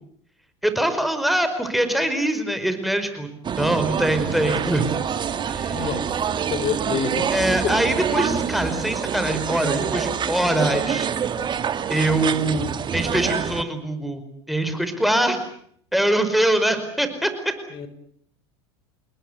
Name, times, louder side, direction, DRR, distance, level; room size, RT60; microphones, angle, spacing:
voice 1, 0.6-4.9 5.5-5.8 7.3-11.1 11.9-14.2 14.5-15.4 15.9-17.3, right 1 dB, ahead, 8 dB, 5.2 m, -23 dB
sound 1, 3.4-13.6, right 7 dB, 30° right, 2.1 m, -26 dB
voice 2, 5.7-6.1 6.5-7.3 7.6-7.8 17.7-17.9, left 7 dB, 40° left, 11 dB, 4.4 m, -27 dB
30.0 x 20.0 x 8.1 m, 0.65 s
hypercardioid pair, 90°, 15 cm